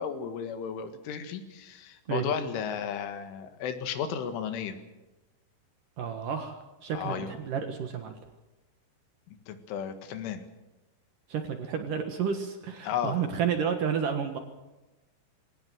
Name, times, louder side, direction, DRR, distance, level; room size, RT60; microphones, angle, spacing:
voice 1, 0.0-4.8 6.9-7.3 9.5-10.4 12.8-13.2, left 7 dB, 90° left, 8 dB, 4.3 m, -34 dB
voice 2, 6.0-8.1 11.3-14.4, right 7 dB, 60° right, 6 dB, 2.5 m, -31 dB
21.5 x 18.5 x 7.9 m, 1.1 s
omnidirectional pair, 5.4 m